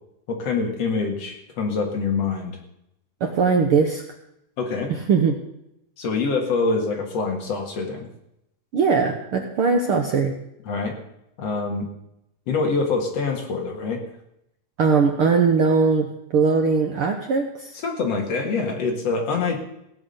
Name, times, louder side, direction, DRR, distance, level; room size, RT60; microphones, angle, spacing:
voice 1, 0.3-2.6 4.6-4.9 6.0-8.1 10.7-11.0 11.4-11.9 12.5-14.0 17.8-19.6, left 4 dB, 60° left, 2 dB, 2.8 m, -25 dB
voice 2, 3.2-4.0 4.9-5.4 8.7-10.3 14.8-16.1 16.3-17.7, right 5 dB, 60° right, 3 dB, 1.5 m, -20 dB
17.0 x 6.1 x 8.1 m, 0.81 s
omnidirectional pair, 3.5 m